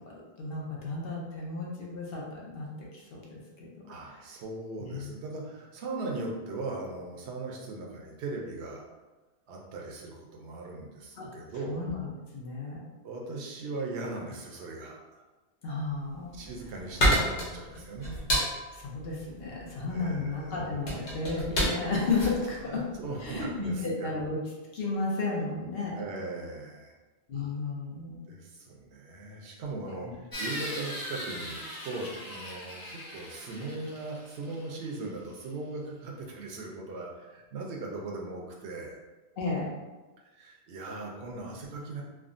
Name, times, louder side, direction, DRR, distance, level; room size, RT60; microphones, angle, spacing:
voice 1, 0.1-4.2 4.8-5.1 11.2-11.3 11.7-12.1 12.3-12.8 15.6-16.3 18.7-22.8 23.2-24.4 24.7-26.1 27.3-28.2 29.9-30.2 39.4-39.7, left 3 dB, 65° left, -3 dB, 0.8 m, -33 dB
voice 2, 3.9-8.8 9.5-11.9 13.0-15.2 16.3-18.3 19.9-20.6 22.6-24.1 25.9-26.9 28.3-31.6 31.8-39.0 40.2-42.0, right 3 dB, 75° right, -1 dB, 0.9 m, -39 dB
sound 1, 16.1-23.5, equal, 90° left, 1.2 m, -30 dB
sound 2, 30.3-35.0, equal, 35° left, 0.3 m, -40 dB
3.4 x 2.0 x 2.5 m, 1.2 s
omnidirectional pair, 1.1 m